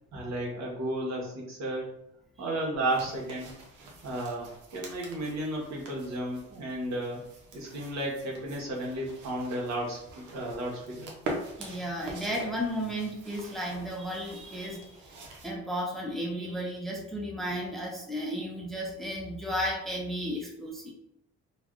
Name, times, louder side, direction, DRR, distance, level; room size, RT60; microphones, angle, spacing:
voice 1, 0.1-1.9 2.4-3.5 4.0-7.2 7.5-10.0 10.3-11.1, right 1 dB, 65° right, -3 dB, 1.1 m, -33 dB
sound 1, 2.9-15.5, right 2 dB, 80° right, 0.8 m, -44 dB
voice 2, 11.6-14.9 15.4-20.9, equal, ahead, -2 dB, 0.6 m, -34 dB
3.2 x 2.3 x 2.4 m, 0.80 s
cardioid pair, 90°, 30 cm